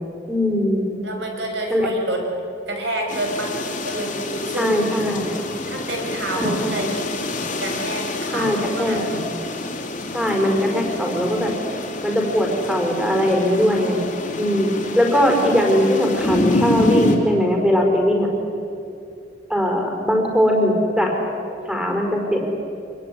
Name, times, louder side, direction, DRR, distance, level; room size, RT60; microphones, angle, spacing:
voice 1, 0.3-0.8 1.7-1.9 4.5-5.3 6.4-6.9 8.3-9.1 10.1-11.5 12.0-14.0 14.4-14.7 14.9-18.3 19.5-21.1 21.7-22.5, equal, 5° right, 0 dB, 4.8 m, -20 dB
voice 2, 1.0-2.3 2.7-5.2 5.6-7.3 7.6-9.2, right 1 dB, 65° right, 2 dB, 5.5 m, -29 dB
sound 1, 3.1-17.2, left 1 dB, 45° left, 3.2 m, -27 dB
25.0 x 22.0 x 9.7 m, 2.7 s
head